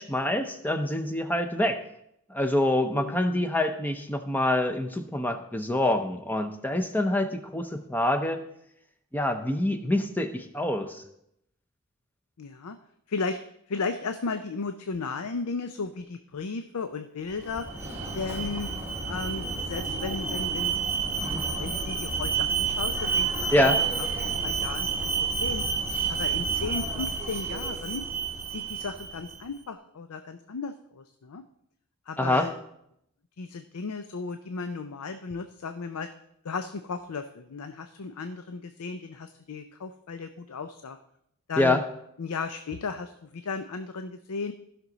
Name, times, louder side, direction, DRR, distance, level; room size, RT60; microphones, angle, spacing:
voice 1, 0.0-1.8 2.3-8.4 9.1-11.0 23.5-23.8 32.2-32.5 41.6-41.8, left 1 dB, 10° left, 6 dB, 0.6 m, -26 dB
voice 2, 3.0-3.5 12.4-12.8 13.1-13.4 13.7-17.6 18.1-18.7 19.0-20.8 21.6-23.7 24.2-25.6 26.1-28.0 28.5-31.4 32.1-32.5 33.4-36.1 36.4-41.0 41.5-41.8 42.2-44.5, left 4 dB, 85° left, 9 dB, 0.5 m, -35 dB
Alarm, 17.3-29.4, right 5 dB, 10° right, 0.9 m, -29 dB
15.5 x 6.0 x 3.9 m, 0.76 s
head